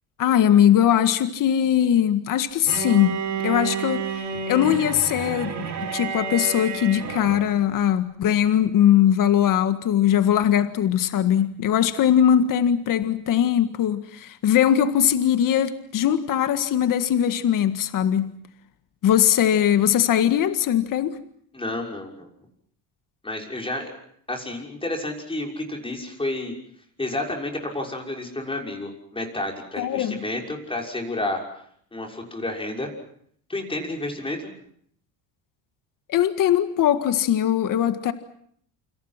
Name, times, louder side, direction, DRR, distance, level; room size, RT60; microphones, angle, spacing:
voice 1, 0.2-3.2 3.4-4.0 4.5-18.3 19.0-21.2 29.8-30.2 36.1-38.1, left 10 dB, 60° left, 1.8 m, -20 dB
Bowed string instrument, 2.7-7.5, right 6 dB, 50° right, 6.9 m, -30 dB
voice 2, 21.5-22.3 23.2-24.0 24.3-26.5 27.0-31.4 31.9-32.9 33.5-34.5, left 2 dB, 15° left, 6.2 m, -30 dB
28.0 x 27.0 x 5.9 m
cardioid pair, 110°, 37 cm